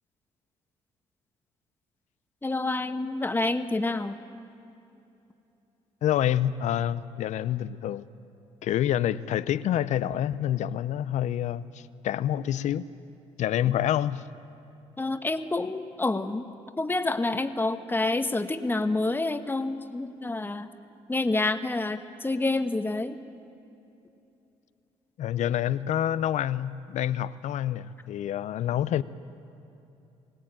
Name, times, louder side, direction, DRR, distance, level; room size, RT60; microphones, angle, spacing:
voice 1, 2.4-4.2 15.0-16.4 16.8-20.7 21.1-23.2, left 2 dB, 15° left, 8 dB, 1.3 m, -28 dB
voice 2, 6.0-8.1 8.6-12.9 13.4-14.3 25.2-29.0, left 11 dB, 70° left, 16 dB, 0.7 m, -27 dB
22.0 x 18.0 x 8.9 m, 2.8 s
supercardioid pair, 75°, 13 cm